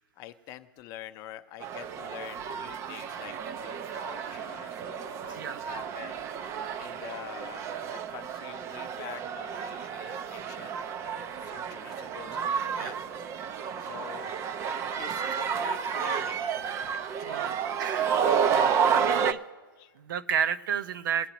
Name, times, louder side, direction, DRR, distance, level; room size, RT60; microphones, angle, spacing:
voice 1, 0.2-6.2 6.8-10.8 11.0-13.0 13.5-14.4 15.0-18.5 18.8-19.3 19.8-19.9, left 13 dB, 30° left, 9 dB, 0.6 m, -46 dB
sound 1, 1.6-19.3, right 7 dB, 25° right, 0.4 m, -31 dB
voice 2, 5.3-5.6 12.8-12.9 14.7-14.9 15.3-15.4 17.2-18.1 18.5-19.4 20.0-21.3, right 7 dB, 60° right, 12 dB, 0.7 m, -32 dB
21.0 x 8.9 x 3.0 m, 1.4 s
hypercardioid pair, 140°, 12 cm